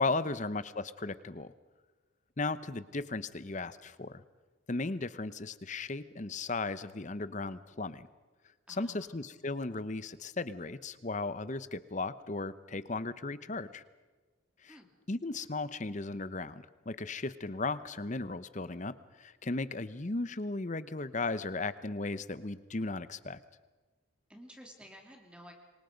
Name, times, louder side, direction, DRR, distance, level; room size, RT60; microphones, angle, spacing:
voice 1, 0.0-1.5 2.4-4.2 4.7-8.1 8.7-13.8 14.6-14.8 15.1-23.4, left 3 dB, 35° left, 14 dB, 0.8 m, -36 dB
voice 2, 8.7-9.3 14.7-14.9 24.3-25.5, equal, 5° right, 2 dB, 2.8 m, -53 dB
27.5 x 24.0 x 5.2 m, 1.3 s
head